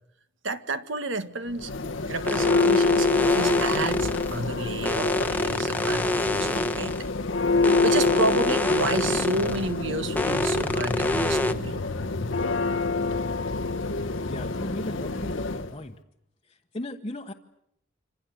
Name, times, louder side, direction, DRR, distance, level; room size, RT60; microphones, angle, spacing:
voice 1, 0.4-1.7 2.1-6.9 7.8-11.8, right 2 dB, 65° right, 10 dB, 1.7 m, -30 dB
Church bell, 1.5-15.7, left 3 dB, 65° left, 1.1 m, -27 dB
sound 1, 2.3-4.4 4.9-7.1 7.6-9.7 10.2-11.5, left 1 dB, 10° left, 1.1 m, -26 dB
voice 2, 14.2-15.9 16.5-17.3, left 1 dB, 25° left, 0 dB, 1.2 m, -36 dB
27.0 x 26.0 x 7.8 m, 0.75 s
head